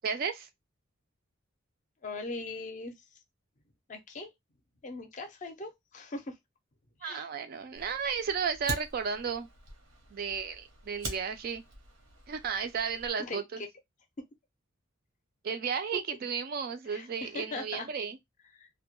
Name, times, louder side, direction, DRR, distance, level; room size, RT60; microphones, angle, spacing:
voice 1, 0.0-0.5 7.0-9.5 10.1-11.6 12.3-13.6 15.4-18.2, right 6 dB, 45° right, 0.3 m, -33 dB
voice 2, 2.0-2.9 3.9-4.3 4.8-6.4 7.0-7.3 13.2-13.7 16.9-17.9 18.6-18.7, left 3 dB, 35° left, 0.5 m, -40 dB
Fire, 7.7-13.1, right 2 dB, 85° right, 0.9 m, -44 dB
2.2 x 2.1 x 2.9 m
head